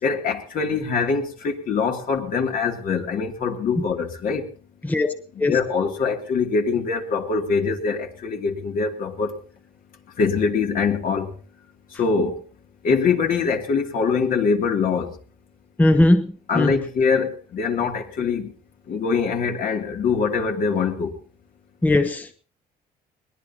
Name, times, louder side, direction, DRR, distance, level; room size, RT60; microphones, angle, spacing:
voice 1, 0.0-4.5 5.4-9.4 10.2-11.3 11.9-12.4 12.8-15.2 16.5-18.5 18.9-21.2, left 5 dB, 55° left, 3 dB, 2.7 m, -23 dB
voice 2, 4.8-5.6 15.8-16.7 21.8-22.3, left 1 dB, 10° left, 9 dB, 0.9 m, -19 dB
21.5 x 20.0 x 2.9 m, 0.39 s
cardioid pair, 110°, 17 cm